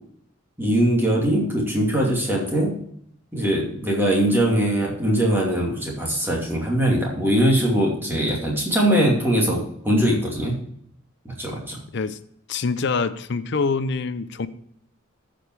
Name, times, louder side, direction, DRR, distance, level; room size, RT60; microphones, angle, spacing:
voice 1, 0.6-2.7 3.3-10.6 11.2-11.8, right 1 dB, 10° right, -3 dB, 2.5 m, -21 dB
voice 2, 12.5-14.5, left 4 dB, 55° left, 13 dB, 0.5 m, -25 dB
13.5 x 5.3 x 4.6 m, 0.69 s
head